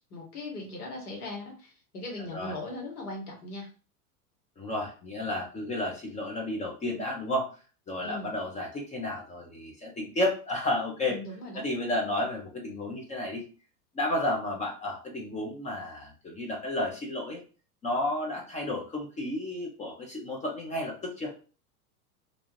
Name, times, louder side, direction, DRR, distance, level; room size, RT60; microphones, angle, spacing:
voice 1, 0.0-3.7 8.0-8.3 11.1-11.7, left 2 dB, 80° left, 0 dB, 1.4 m, -39 dB
voice 2, 4.6-7.5 7.9-11.2 11.5-13.4 13.9-17.4 17.8-21.3, left 1 dB, 15° left, 0 dB, 0.5 m, -32 dB
2.6 x 2.3 x 3.1 m, 0.36 s
hypercardioid pair, 105°, 45 cm